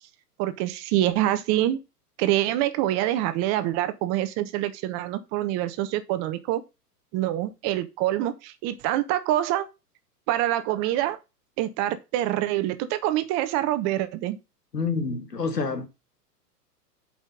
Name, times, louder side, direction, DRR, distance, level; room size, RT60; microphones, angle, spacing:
voice 1, 0.4-1.8 2.2-6.6 7.1-9.7 10.3-11.2 11.6-14.4, right 13 dB, 35° right, 1.1 m, -25 dB
voice 2, 14.7-15.9, left 4 dB, 85° left, 1.6 m, -27 dB
7.5 x 5.3 x 5.2 m
figure-of-eight pair, 105°, 48 cm